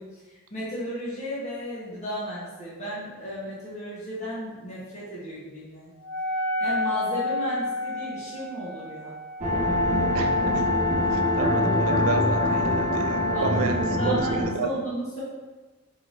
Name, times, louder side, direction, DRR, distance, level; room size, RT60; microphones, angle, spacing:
voice 1, 0.0-5.9 6.6-9.1 13.3-13.6 13.9-15.2, equal, 35° left, -9 dB, 1.1 m, -34 dB
Wind instrument woodwind instrument, 6.0-11.8, left 1 dB, 60° left, 0.5 m, -32 dB
sound 1, 9.4-14.5, left 1 dB, 35° right, 0.7 m, -23 dB
voice 2, 10.1-10.7 11.1-14.7, right 5 dB, 80° right, 5 dB, 0.3 m, -31 dB
4.6 x 3.4 x 2.6 m, 1.2 s
head